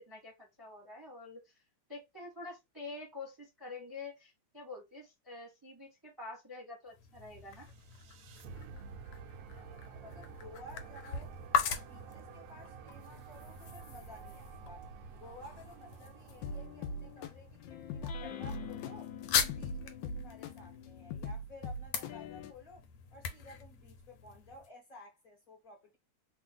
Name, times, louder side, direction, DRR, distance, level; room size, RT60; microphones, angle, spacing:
voice 1, 0.1-1.5 1.9-7.7, left 3 dB, 15° right, 0.9 m, -47 dB
sound 1, 6.9-24.7, left 7 dB, 90° left, 1.6 m, -40 dB
sound 2, 7.5-17.7, right 6 dB, 80° right, 1.5 m, -51 dB
voice 2, 9.5-11.3 11.6-22.8 23.1-26.0, left 1 dB, 50° left, 1.2 m, -54 dB
sound 3, 16.4-22.5, left 4 dB, 70° left, 1.1 m, -41 dB
3.7 x 2.3 x 3.7 m
omnidirectional pair, 2.4 m